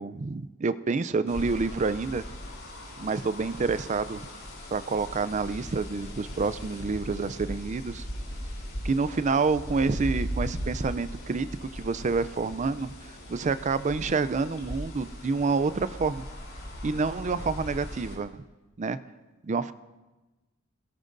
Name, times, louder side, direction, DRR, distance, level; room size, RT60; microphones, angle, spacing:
voice 1, 0.0-2.2 3.0-4.2 4.7-8.0 8.8-12.9 13.3-16.2 16.8-18.4 18.8-19.0 19.4-19.7, right 4 dB, 35° right, 14 dB, 0.4 m, -28 dB
sound 1, 1.3-18.1, equal, 80° left, 3.5 m, -38 dB
23.5 x 17.0 x 2.6 m, 1.1 s
head